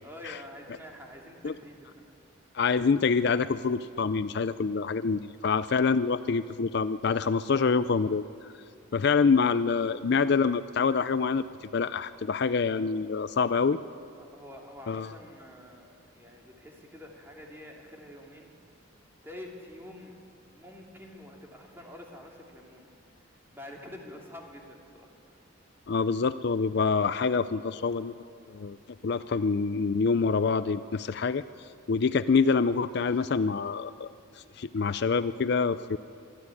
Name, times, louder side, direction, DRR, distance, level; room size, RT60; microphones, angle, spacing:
voice 1, 0.0-2.2 14.2-18.5 19.2-22.9 23.3-25.4, left 1 dB, 10° right, 0 dB, 2.7 m, -47 dB
voice 2, 2.5-8.2 8.9-11.4 11.7-13.8 14.9-15.1 25.9-28.1 28.5-28.8 29.0-31.4 31.9-34.1 34.6-36.0, left 5 dB, 55° left, 13 dB, 0.4 m, -26 dB
25.0 x 12.0 x 9.7 m, 2.4 s
head